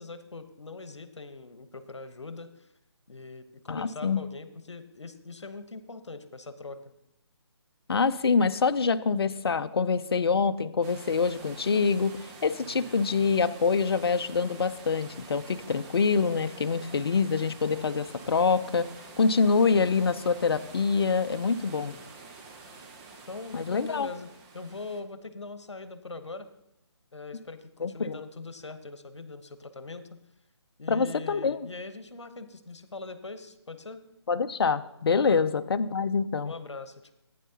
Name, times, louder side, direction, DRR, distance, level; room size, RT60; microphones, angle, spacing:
voice 1, 0.0-2.7 3.1-6.8 12.6-12.9 21.8-22.1 23.3-26.5 27.1-30.2 30.8-34.0 35.3-35.5 36.4-37.1, left 3 dB, 75° left, 10 dB, 1.1 m, -42 dB
voice 2, 3.7-4.2 7.9-18.9 19.2-22.0 23.5-24.1 27.8-28.2 30.9-31.7 34.3-36.5, left 5 dB, 60° left, 11 dB, 0.6 m, -25 dB
sound 1, 10.8-25.0, right 4 dB, 15° right, 0.8 m, -47 dB
15.0 x 9.4 x 2.9 m, 0.86 s
figure-of-eight pair, 150°, 15 cm